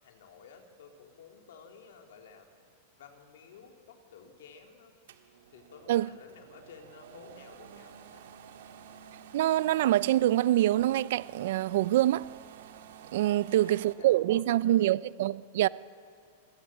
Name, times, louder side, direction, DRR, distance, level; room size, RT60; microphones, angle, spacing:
voice 1, 0.0-2.5 3.0-4.9 5.5-8.3 13.2-14.8, left 6 dB, 75° left, 3.2 m, -53 dB
sound 1, 5.1-13.9, right 8 dB, 75° right, 1.9 m, -51 dB
voice 2, 9.3-12.3 13.1-15.7, right 14 dB, 60° right, 0.5 m, -25 dB
26.5 x 15.0 x 8.8 m
supercardioid pair, 165°, 0 cm